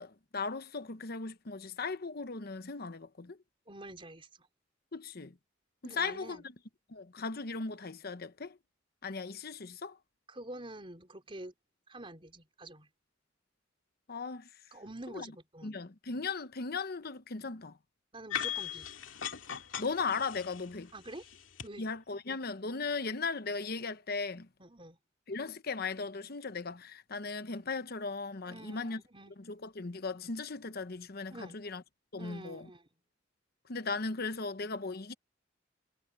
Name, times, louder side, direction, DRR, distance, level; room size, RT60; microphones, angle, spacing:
voice 1, 0.0-3.4 4.9-5.4 5.8-6.4 6.9-8.6 9.0-10.0 14.1-14.5 15.1-15.3 15.6-17.8 19.8-20.9 21.8-24.5 25.3-29.0 29.4-31.8 32.1-32.7 33.7-35.1, left 4 dB, 50° left, 1.0 m, -37 dB
voice 2, 3.7-4.5 5.8-6.4 10.3-11.5 11.9-12.9 14.7-15.7 18.1-18.9 20.9-21.2 21.6-21.9 24.6-25.0 28.5-29.3 31.3-31.6 32.2-32.8, right 1 dB, 25° right, 4.4 m, -47 dB
sound 1, 18.3-21.7, left 9 dB, 80° left, 2.3 m, -39 dB
head